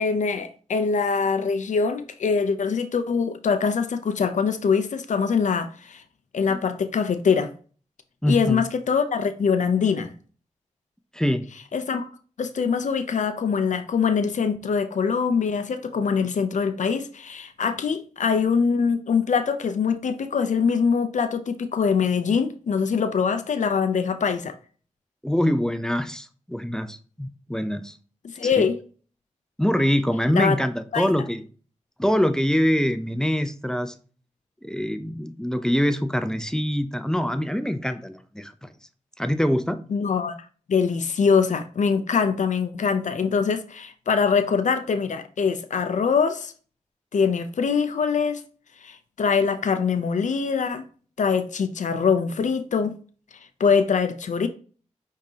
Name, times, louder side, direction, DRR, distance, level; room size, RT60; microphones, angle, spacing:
voice 1, 0.0-6.0 6.3-7.5 8.3-10.1 11.7-12.1 12.4-24.5 28.2-28.8 30.3-30.6 30.9-31.1 39.9-40.4 40.7-46.5 47.1-48.4 48.8-50.8 51.2-52.9 53.6-54.5, left 5 dB, 80° left, 0.5 m, -23 dB
voice 2, 8.2-8.7 11.1-11.5 25.2-28.0 28.6-28.7 29.6-31.4 32.0-33.9 34.6-38.7 39.2-39.8, equal, 5° left, 0.5 m, -24 dB
5.4 x 3.6 x 2.8 m
cardioid pair, 55°, 12 cm